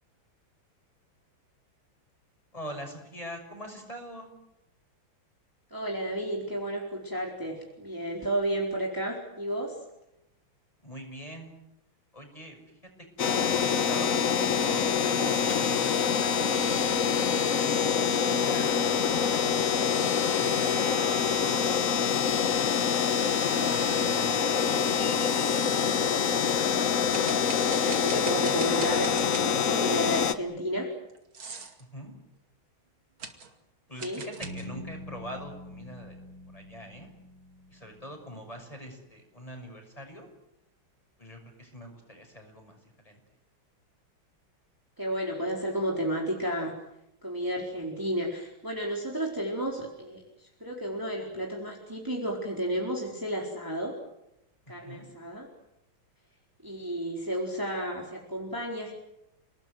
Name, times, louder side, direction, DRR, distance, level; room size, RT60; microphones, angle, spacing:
voice 1, 2.5-4.3 10.8-11.5 12.1-12.8 13.2-13.4 13.9-16.3 17.2-18.8 19.3-21.3 21.9-22.2 22.4-25.5 31.8-32.1 33.9-36.2 36.5-37.1 37.7-40.3 41.2-43.2 54.8-55.1, equal, 15° left, 4 dB, 6.4 m, -44 dB
voice 2, 5.7-9.8 27.5-30.9 34.0-34.2 45.0-46.7 47.2-54.0 54.7-55.5 56.6-58.9, right 1 dB, 10° right, -1 dB, 4.3 m, -32 dB
sound 1, 13.2-30.3, left 7 dB, 45° left, 1.4 m, -25 dB
sound 2, 27.1-29.7 31.1-31.8 33.2-33.5 34.0-34.7, right 5 dB, 80° right, 3.4 m, -42 dB
Bass guitar, 34.4-38.4, left 1 dB, 85° left, 4.9 m, -45 dB
29.5 x 19.5 x 9.4 m, 0.85 s
omnidirectional pair, 2.2 m